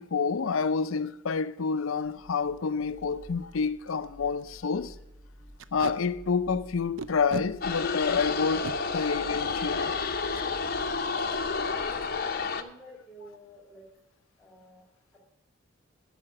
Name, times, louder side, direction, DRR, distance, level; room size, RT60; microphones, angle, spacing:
voice 1, 0.0-5.0 5.7-9.9, left 5 dB, 80° left, 0.5 m, -28 dB
Packing tape duct tape, 1.9-2.1 2.6-2.7 2.9-3.0 3.5-3.6 3.9-4.1 4.4-4.6 5.6-6.0 7.0-7.5 8.4-8.8 10.3-10.5 10.8-11.0 11.3-11.7, right 4 dB, 70° right, 0.5 m, -37 dB
sound 1, 2.0-11.4, equal, 25° right, 3.8 m, -52 dB
sound 2, 7.6-12.6, left 4 dB, 45° left, 0.8 m, -30 dB
voice 2, 11.9-13.9 14.4-14.8 15.1-15.2, equal, ahead, 1.9 m, -50 dB
14.0 x 5.1 x 7.7 m
head